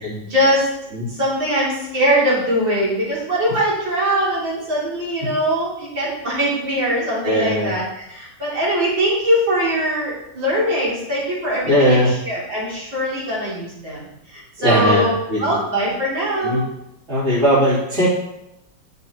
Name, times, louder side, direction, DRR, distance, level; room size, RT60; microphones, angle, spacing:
voice 1, 0.2-16.6, equal, 80° right, -7 dB, 4.0 m, -22 dB
voice 2, 7.2-7.7 11.7-12.1 14.6-15.4 16.4-16.6 17.1-18.1, equal, 35° right, -10 dB, 3.7 m, -18 dB
11.0 x 7.5 x 3.1 m, 0.86 s
omnidirectional pair, 2.0 m